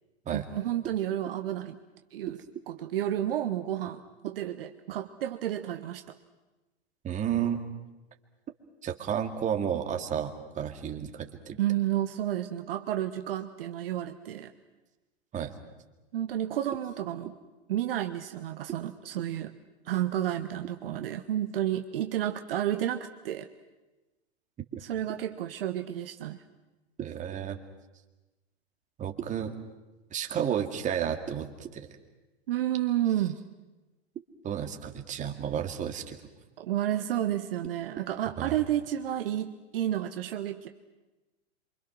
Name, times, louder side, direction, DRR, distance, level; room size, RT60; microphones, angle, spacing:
voice 1, 0.3-1.8 2.1-6.2 11.6-14.5 16.1-17.3 17.7-19.5 19.8-23.5 24.8-26.4 32.5-33.4 36.6-40.7, right 12 dB, 60° right, 7 dB, 1.3 m, -31 dB
voice 2, 7.0-7.6 8.8-11.6 15.3-15.5 24.7-24.8 27.0-27.6 29.0-29.5 30.1-31.9 34.4-36.2 38.4-38.6, right 9 dB, 25° right, 4 dB, 2.2 m, -32 dB
28.0 x 25.0 x 6.2 m, 1.1 s
hypercardioid pair, 110°, 32 cm